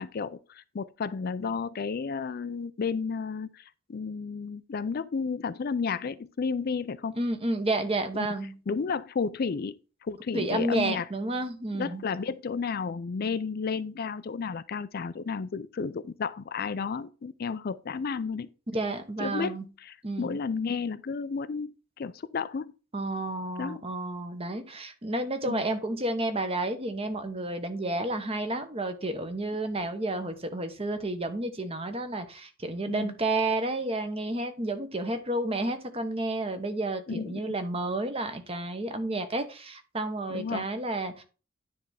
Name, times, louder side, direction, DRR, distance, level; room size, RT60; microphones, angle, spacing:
voice 1, 0.0-7.2 8.1-8.3 8.7-9.8 10.0-11.1 11.7-18.5 19.2-22.7 23.6-23.8 25.4-25.6 32.9-33.2 37.1-37.6 40.3-40.7, left 5 dB, 45° left, 0.4 m, -32 dB
voice 2, 7.2-8.6 10.3-12.0 18.7-19.6 20.0-20.4 22.9-41.2, right 2 dB, 30° right, 1.0 m, -31 dB
9.8 x 3.5 x 5.7 m
head